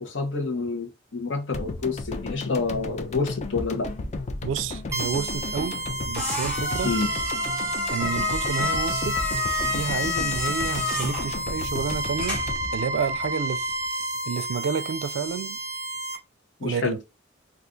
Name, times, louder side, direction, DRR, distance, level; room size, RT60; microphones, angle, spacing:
voice 1, 0.0-3.9 6.8-7.1 16.6-17.0, left 4 dB, 75° left, 0.8 m, -28 dB
sound 1, 1.5-13.9 14.2-14.3, left 3 dB, 35° left, 0.4 m, -34 dB
voice 2, 4.4-5.8 6.1-6.9 7.9-9.2 9.6-12.4 12.7-13.7 14.3-15.6 16.6-17.0, right 6 dB, 80° right, 0.3 m, -30 dB
sound 2, 4.9-16.2, right 1 dB, 15° right, 0.7 m, -31 dB
sound 3, 5.4-12.7, left 3 dB, 5° left, 0.9 m, -30 dB
2.4 x 2.4 x 3.7 m
head